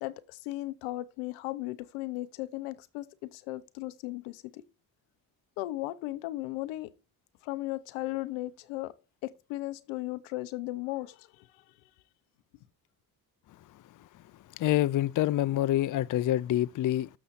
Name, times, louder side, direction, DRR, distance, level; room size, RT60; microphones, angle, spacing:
voice 1, 0.0-4.6 5.6-6.9 7.4-8.9 9.2-11.5, left 17 dB, 85° left, 0.7 m, -36 dB
voice 2, 14.6-17.1, left 13 dB, 45° left, 0.5 m, -26 dB
7.0 x 6.2 x 4.0 m
hypercardioid pair, 45°, 46 cm